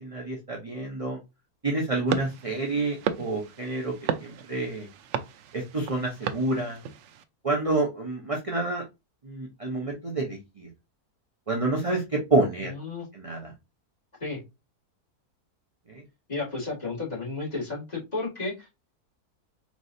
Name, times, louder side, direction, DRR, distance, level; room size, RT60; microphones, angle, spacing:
voice 1, 0.0-1.2 1.6-3.9 4.2-4.9 5.5-6.8 7.4-8.8 9.2-10.7 11.5-12.7 13.1-13.4, right 2 dB, 30° right, -1 dB, 0.7 m, -28 dB
sound 1, 2.1-7.2, right 8 dB, 65° right, 0.7 m, -34 dB
voice 2, 12.6-13.1 14.2-14.4 16.3-18.7, left 3 dB, 25° left, -6 dB, 2.2 m, -32 dB
4.6 x 3.1 x 2.6 m, 0.23 s
omnidirectional pair, 1.6 m